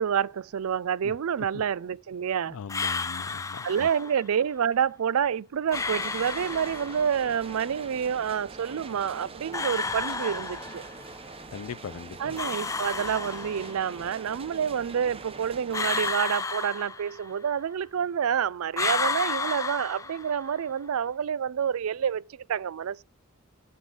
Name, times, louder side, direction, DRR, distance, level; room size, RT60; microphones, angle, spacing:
voice 1, 0.0-2.6 3.6-10.8 12.2-23.0, right 8 dB, 85° right, 0.4 m, -28 dB
voice 2, 2.5-3.9 11.5-12.4, left 6 dB, 80° left, 0.4 m, -40 dB
sound 1, 2.7-4.2 5.7-7.2 9.5-11.1 12.4-13.9 15.7-17.5 18.7-20.6, left 4 dB, 15° left, 0.4 m, -32 dB
sound 2, 5.7-16.1, right 3 dB, 25° right, 0.8 m, -43 dB
9.4 x 8.9 x 3.9 m
head